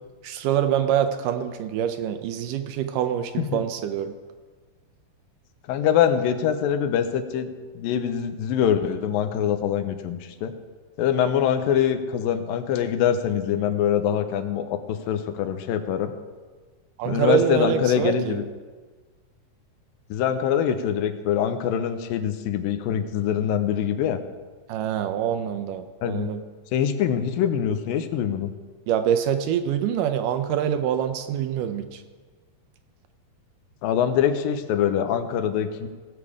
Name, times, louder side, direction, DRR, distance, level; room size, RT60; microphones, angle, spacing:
voice 1, 0.2-4.1 17.0-18.4 24.7-26.4 28.9-32.0, right 9 dB, 80° right, 9 dB, 2.0 m, -25 dB
voice 2, 5.7-7.5 7.8-10.5 11.0-16.1 17.1-18.4 20.1-24.2 26.0-26.3 26.7-28.5 33.8-35.9, left 9 dB, 85° left, 8 dB, 2.4 m, -24 dB
17.5 x 7.0 x 4.9 m, 1.4 s
omnidirectional pair, 4.0 m